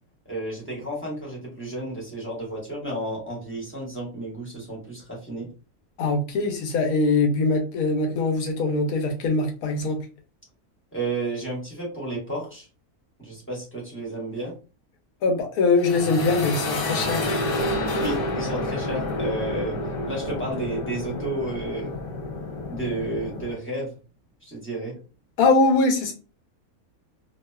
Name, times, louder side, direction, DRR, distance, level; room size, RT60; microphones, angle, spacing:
voice 1, 0.2-5.5 10.9-12.7 13.2-14.5 18.0-19.8 20.1-21.9 22.7-24.0 24.4-25.0, right 2 dB, 10° left, -5 dB, 0.8 m, -32 dB
voice 2, 6.0-10.0 15.2-17.3 25.4-26.1, left 3 dB, 85° left, 4 dB, 1.1 m, -22 dB
sound 1, 15.7-23.5, left 1 dB, 60° left, 0.6 m, -29 dB
2.7 x 2.0 x 2.2 m, 0.34 s
omnidirectional pair, 1.5 m